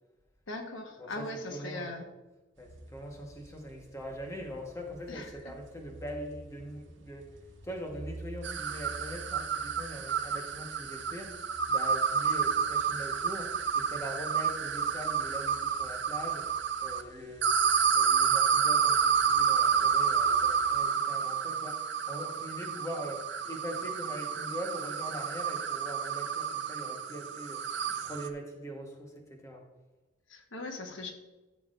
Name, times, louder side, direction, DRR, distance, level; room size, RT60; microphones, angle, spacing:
voice 1, 0.5-2.0 5.1-5.3 30.3-31.1, left 2 dB, 90° left, 4 dB, 1.2 m, -39 dB
voice 2, 1.0-1.9 2.6-7.3 7.6-21.8 22.1-29.6, equal, 15° left, 1 dB, 1.2 m, -42 dB
sound 1, 2.6-20.9, right 1 dB, 80° right, 1.2 m, -52 dB
sound 2, 8.4-17.0 17.4-28.3, right 7 dB, 65° right, 0.6 m, -29 dB
13.5 x 7.2 x 2.5 m, 1.1 s
head